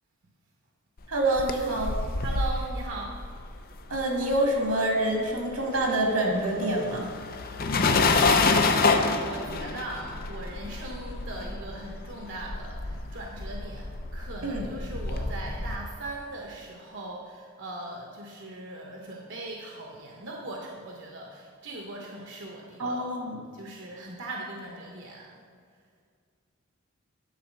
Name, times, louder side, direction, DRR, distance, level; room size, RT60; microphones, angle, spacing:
sound 1, 1.1-4.8 5.0-15.8, left 3 dB, 45° left, 0.5 m, -28 dB
voice 1, 1.1-2.0 3.9-7.1 14.4-14.6 22.8-23.4, right 1 dB, 85° right, 0 dB, 2.0 m, -26 dB
voice 2, 2.2-3.2 8.1-23.0 23.5-25.3, right 2 dB, 55° right, -1 dB, 0.9 m, -39 dB
10.0 x 4.3 x 6.5 m, 2.1 s
head